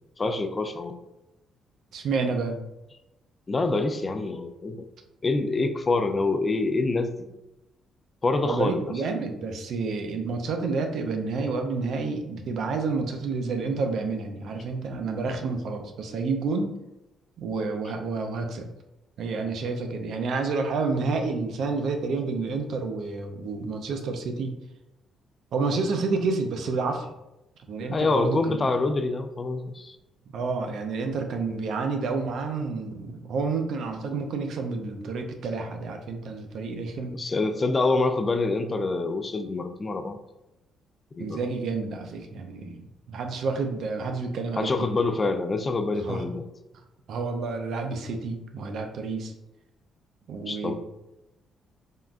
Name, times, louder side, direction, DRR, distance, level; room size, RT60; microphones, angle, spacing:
voice 1, 0.2-1.0 3.5-4.9 5.2-7.2 8.2-8.8 27.9-30.0 37.1-40.2 41.2-41.4 44.6-46.5 50.5-50.7, left 3 dB, 30° left, 7 dB, 0.3 m, -26 dB
voice 2, 1.9-2.7 8.4-16.8 17.4-18.7 19.2-24.5 25.5-27.1 27.7-28.7 30.3-37.2 41.2-42.8 43.1-45.0 45.9-46.2 47.1-49.3 50.3-50.7, right 4 dB, 70° right, 5 dB, 0.4 m, -29 dB
3.6 x 2.2 x 2.4 m, 0.94 s
cardioid pair, 90°, 0 cm